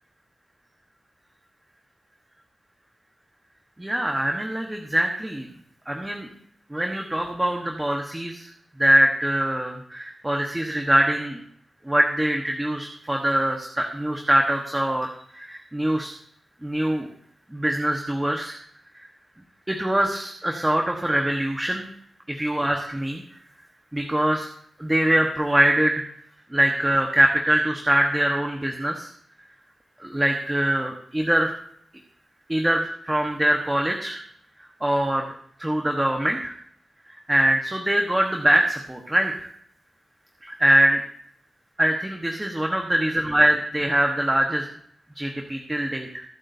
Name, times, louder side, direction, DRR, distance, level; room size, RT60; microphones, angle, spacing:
voice 1, 3.8-5.5 5.9-6.3 6.7-8.5 8.8-11.4 11.9-16.1 16.6-17.1 17.5-18.6 18.9-19.1 19.7-21.9 22.3-23.2 23.9-24.5 24.8-26.0 26.5-29.1 30.0-31.5 32.5-34.2 34.8-35.2 35.6-36.5 37.1-39.5 40.6-41.0 41.8-44.7 45.2-46.2, right 1 dB, 10° right, 2 dB, 1.3 m, -23 dB
23.5 x 8.4 x 2.8 m, 0.66 s
wide cardioid pair, 125°, 0 cm